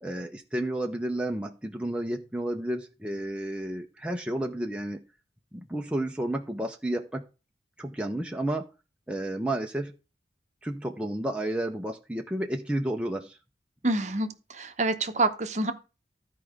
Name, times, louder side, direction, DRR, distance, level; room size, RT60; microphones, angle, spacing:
voice 1, 0.0-5.0 5.5-7.3 7.8-8.7 9.1-9.9 10.6-13.4, right 1 dB, 5° right, 0.6 m, -31 dB
voice 2, 13.8-15.7, right 2 dB, 40° right, 0.8 m, -27 dB
13.0 x 4.6 x 5.0 m
head